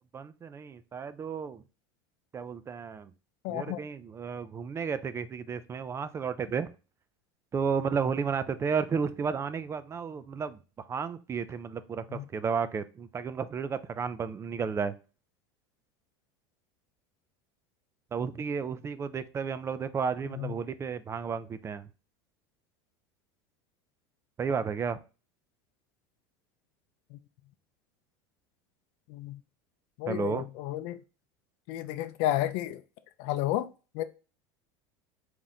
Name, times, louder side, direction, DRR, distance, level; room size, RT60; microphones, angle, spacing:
voice 1, 0.1-1.6 2.3-3.1 3.5-6.7 7.5-14.9 18.1-21.9 24.4-25.0 30.1-30.5, right 6 dB, 25° right, 0.3 m, -32 dB
voice 2, 3.4-3.8 12.1-12.2 20.4-20.5 27.1-27.2 29.1-29.4 30.0-31.0 31.7-32.8 33.2-33.7 33.9-34.0, left 13 dB, 65° left, 0.5 m, -31 dB
4.3 x 2.5 x 4.0 m
supercardioid pair, 115°, 12 cm